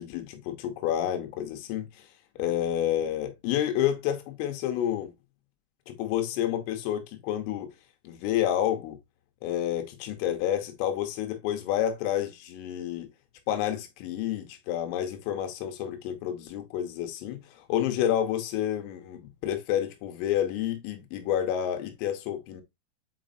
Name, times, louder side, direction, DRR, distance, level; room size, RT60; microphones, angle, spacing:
voice 1, 0.0-2.1 2.4-5.1 5.9-7.7 8.1-9.0 9.4-13.1 13.5-22.6, left 11 dB, 85° left, 3.5 m, -29 dB
8.0 x 5.1 x 2.6 m
omnidirectional pair, 5.8 m